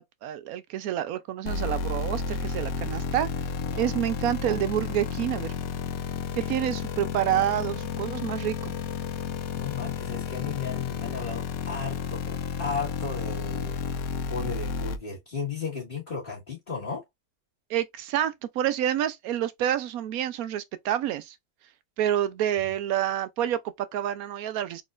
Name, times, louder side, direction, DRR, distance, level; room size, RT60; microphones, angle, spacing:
voice 1, 0.0-3.3 3.8-5.5 6.3-8.7 17.7-21.4 22.0-24.8, right 11 dB, 70° right, 1.0 m, -28 dB
sound 1, 1.5-15.0, left 6 dB, 70° left, 1.0 m, -32 dB
voice 2, 9.5-13.8 14.3-17.0, left 5 dB, 30° left, 2.0 m, -35 dB
4.1 x 3.7 x 2.4 m
omnidirectional pair, 1.7 m